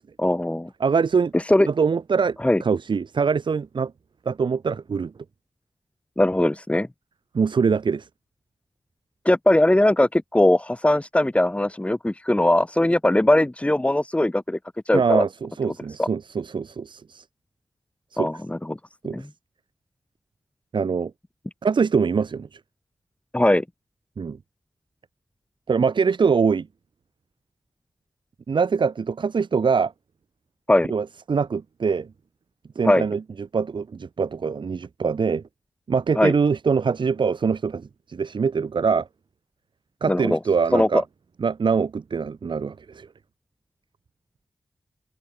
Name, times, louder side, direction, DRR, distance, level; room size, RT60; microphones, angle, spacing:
voice 1, 0.2-0.7 1.3-1.7 2.4-2.6 6.2-6.9 9.2-14.6 14.9-15.2 16.0-16.1 18.2-18.8 19.1-19.2 23.3-23.6 30.7-30.9 32.8-33.0 36.2-36.3 40.1-40.4 40.7-41.0, left 1 dB, 15° left, 2.6 m, -20 dB
voice 2, 0.8-1.3 1.6-3.9 4.3-5.1 7.3-8.1 14.9-17.3 18.1-18.3 19.0-19.2 20.7-21.1 21.6-22.6 24.2-24.4 25.7-26.7 28.5-29.9 30.9-32.1 32.8-35.4 35.9-39.1 40.0-41.0 41.4-43.1, right 5 dB, 80° right, 7.0 m, -23 dB
open air
wide cardioid pair, 65°, 8 cm